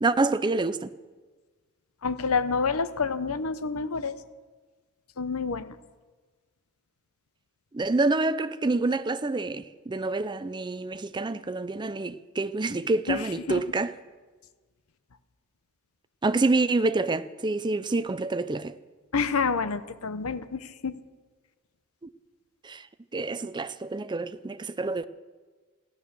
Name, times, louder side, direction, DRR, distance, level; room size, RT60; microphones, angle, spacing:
voice 1, 0.0-0.9 7.7-13.9 16.2-18.7 22.0-22.1 22.6-22.9 23.1-25.1, right 3 dB, 20° right, 0.5 m, -27 dB
voice 2, 2.0-4.2 5.2-5.8 13.1-13.6 19.1-20.9, left 5 dB, 75° left, 0.9 m, -28 dB
15.5 x 12.0 x 6.9 m
head